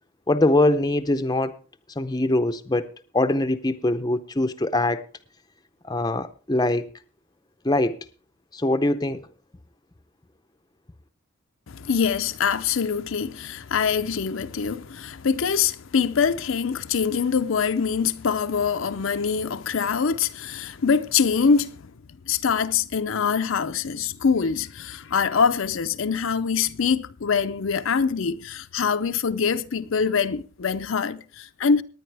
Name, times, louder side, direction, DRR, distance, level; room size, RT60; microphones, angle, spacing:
voice 1, 0.3-1.5 2.0-2.9 3.1-5.0 5.9-6.9 7.6-8.0 8.5-9.3, left 1 dB, 20° left, 0.6 m, -22 dB
voice 2, 11.7-21.7 22.3-31.8, left 6 dB, 65° left, 0.5 m, -24 dB
18.5 x 10.0 x 3.4 m
head